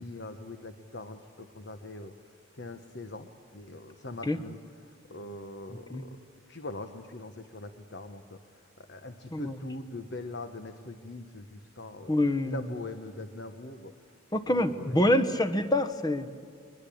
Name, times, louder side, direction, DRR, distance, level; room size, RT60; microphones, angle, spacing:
voice 1, 0.0-6.2 6.5-12.1 12.4-13.9 14.5-15.4, left 2 dB, 60° left, 7 dB, 1.2 m, -42 dB
voice 2, 12.1-12.7 14.3-16.4, left 1 dB, 20° left, 9 dB, 1.1 m, -26 dB
23.0 x 21.0 x 8.6 m, 2.3 s
head